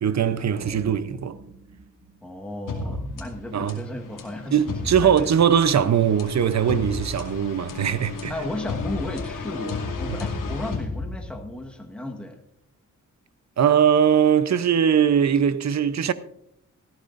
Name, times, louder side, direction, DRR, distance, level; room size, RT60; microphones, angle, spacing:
voice 1, 0.0-1.4 2.9-3.2 3.5-3.8 4.5-8.3 10.1-10.2 13.6-16.1, right 8 dB, 60° right, 0.8 m, -21 dB
sound 1, 0.5-3.0, right 3 dB, 35° right, 2.3 m, -43 dB
voice 2, 2.2-5.3 8.3-12.4, left 1 dB, 5° left, 1.4 m, -35 dB
sound 2, 2.7-11.6, left 4 dB, 85° left, 2.5 m, -33 dB
18.0 x 14.5 x 2.6 m
wide cardioid pair, 100°, 31 cm